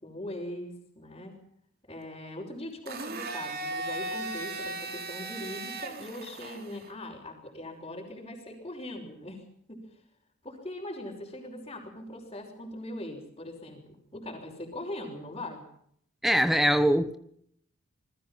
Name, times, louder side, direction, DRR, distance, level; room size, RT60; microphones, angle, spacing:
voice 1, 0.0-1.3 1.9-9.4 9.7-9.8 10.4-13.8 14.1-15.6, left 1 dB, 25° left, -5 dB, 5.6 m, -40 dB
Domestic sounds home sounds, 2.9-6.9, right 2 dB, 45° right, 3.2 m, -37 dB
voice 2, 16.2-17.2, equal, ahead, 12 dB, 1.1 m, -22 dB
28.0 x 21.0 x 5.8 m, 0.67 s
head